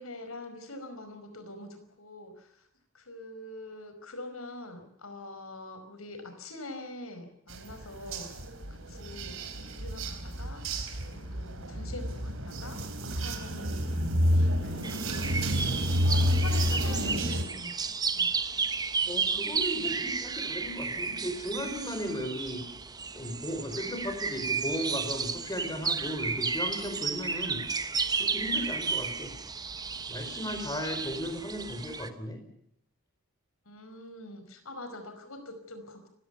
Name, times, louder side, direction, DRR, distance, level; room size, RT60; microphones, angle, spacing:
voice 1, 0.0-2.7 2.9-8.3 8.7-9.4 9.7-10.6 11.1-15.0 15.8-17.7 18.1-18.3 33.6-36.1, left 1 dB, 85° left, 8 dB, 5.1 m, -44 dB
sound 1, 7.5-17.4, equal, 70° right, 3.8 m, -30 dB
sound 2, 14.8-32.1, right 5 dB, 20° right, 1.0 m, -33 dB
voice 2, 16.5-17.1 19.0-22.6 23.1-27.6 28.2-29.3 30.1-32.4, equal, 20° left, 6 dB, 4.7 m, -36 dB
30.0 x 17.0 x 7.0 m, 0.71 s
head